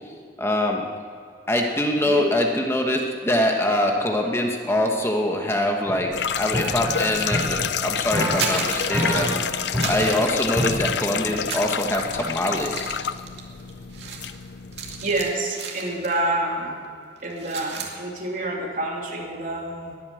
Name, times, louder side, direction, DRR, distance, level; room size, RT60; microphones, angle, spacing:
voice 1, 0.4-0.8 1.5-6.1 6.4-9.4 9.8-12.9, left 1 dB, 15° left, 2 dB, 1.2 m, -23 dB
sound 1, 5.8-6.0 6.5-7.7 8.1-8.6 8.9-11.3, equal, 10° right, 4.4 m, -28 dB
sound 2, 6.1-15.3, left 8 dB, 65° left, 0.5 m, -29 dB
sound 3, 8.3-9.4 9.7-11.0 11.4-16.3 16.6-16.8 17.2-18.0, right 5 dB, 70° right, 2.2 m, -34 dB
voice 2, 15.0-16.8 17.2-19.9, right 2 dB, 50° right, -2 dB, 3.0 m, -27 dB
21.5 x 8.5 x 7.8 m, 2.3 s
head